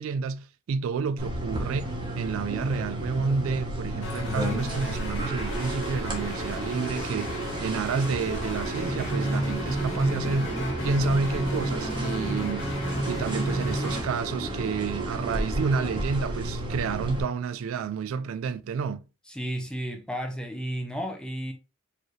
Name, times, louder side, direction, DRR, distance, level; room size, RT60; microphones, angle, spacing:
voice 1, 0.0-12.8 13.1-19.0, right 5 dB, 75° right, 0.3 m, -30 dB
sound 1, 1.2-17.2, right 1 dB, 25° right, 1.1 m, -32 dB
sound 2, 4.0-14.0, equal, 65° left, 1.8 m, -32 dB
voice 2, 19.3-21.5, equal, 5° left, 0.6 m, -33 dB
4.6 x 3.1 x 3.1 m
head